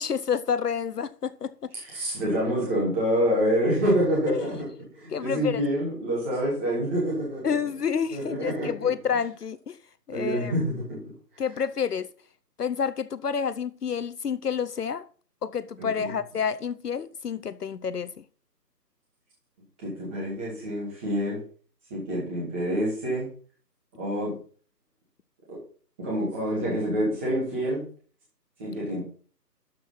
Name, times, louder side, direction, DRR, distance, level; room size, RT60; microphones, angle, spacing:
voice 1, 0.0-1.7 4.3-4.4 5.1-5.6 7.4-9.8 10.1-10.5 11.4-12.1 12.6-15.1 15.4-18.2, left 7 dB, 70° left, 0.7 m, -29 dB
voice 2, 1.9-4.6 5.0-7.4 8.1-8.7 10.1-11.0 15.8-16.1 19.8-21.4 21.9-23.3 24.0-24.3 25.5-25.6 26.0-27.8 28.6-29.0, equal, 5° right, 2.0 m, -27 dB
12.5 x 4.6 x 5.7 m
figure-of-eight pair, 170°, 50 cm